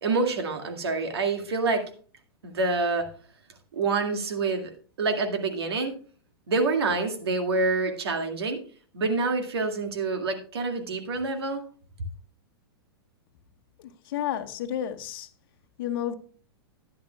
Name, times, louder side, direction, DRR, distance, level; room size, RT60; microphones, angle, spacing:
voice 1, 0.0-1.9 2.4-3.1 3.7-4.7 5.0-5.9 6.5-8.6 8.9-11.6, right 3 dB, 80° right, 2.0 m, -27 dB
voice 2, 13.8-15.3 15.8-16.1, left 10 dB, 60° left, 1.0 m, -31 dB
12.5 x 10.0 x 2.2 m
hypercardioid pair, 115°, 13 cm